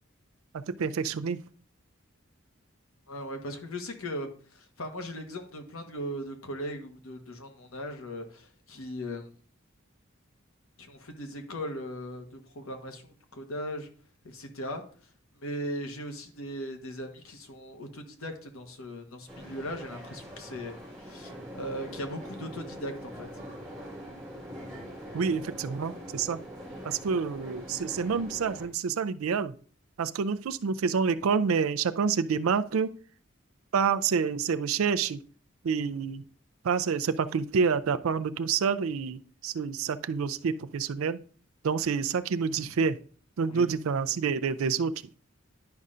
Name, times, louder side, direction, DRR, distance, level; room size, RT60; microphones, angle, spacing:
voice 1, 0.5-1.4 25.1-26.4 26.8-29.5 30.0-32.9 33.7-35.2 35.6-36.3 36.6-41.2 41.6-43.0 43.4-44.9, right 6 dB, 85° right, 12 dB, 0.4 m, -28 dB
voice 2, 3.1-9.3 10.8-13.9 14.2-14.8 15.4-23.3 42.5-42.6 43.4-43.7, equal, 85° left, 5 dB, 1.2 m, -38 dB
sound 1, 19.3-28.7, equal, 5° left, 2.7 m, -43 dB
10.5 x 5.4 x 2.5 m, 0.43 s
head